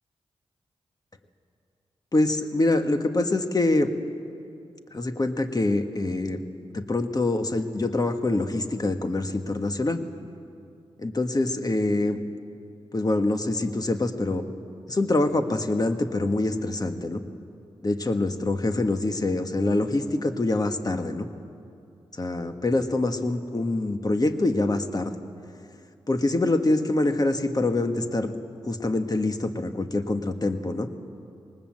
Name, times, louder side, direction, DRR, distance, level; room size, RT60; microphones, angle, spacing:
voice 1, 2.1-3.9 4.9-6.4 6.7-10.0 11.0-12.2 12.9-14.5 14.9-17.2 17.8-21.3 22.2-25.1 26.1-28.3 28.7-30.9, left 2 dB, 35° left, 7 dB, 1.6 m, -25 dB
19.5 x 19.0 x 7.8 m, 2.5 s
cardioid pair, 45°, 11 cm